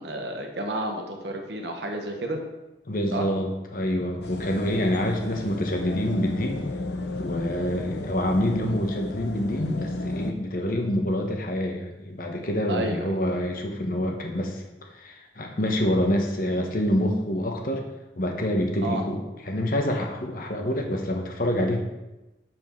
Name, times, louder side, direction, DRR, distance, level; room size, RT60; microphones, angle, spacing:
voice 1, 0.0-2.4 3.1-3.3 12.7-13.1 18.8-19.0, right 1 dB, 70° right, 3 dB, 1.2 m, -31 dB
voice 2, 2.9-6.6 7.2-14.6 14.9-17.8 18.2-21.8, left 1 dB, 50° left, 2 dB, 1.1 m, -26 dB
sound 1, 4.2-10.3, left 2 dB, 70° left, 0.8 m, -33 dB
6.9 x 6.1 x 4.6 m, 1.0 s
head